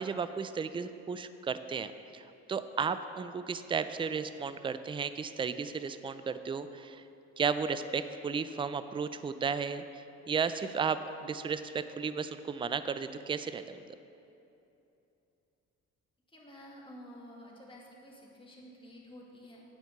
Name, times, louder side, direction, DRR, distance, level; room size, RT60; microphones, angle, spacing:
voice 1, 0.0-7.0 7.4-9.8 10.3-14.0, right 6 dB, 20° right, 12 dB, 0.3 m, -34 dB
voice 2, 16.3-19.6, equal, 15° left, -3 dB, 1.9 m, -51 dB
9.4 x 5.0 x 6.5 m, 2.9 s
cardioid pair, 90°, 30 cm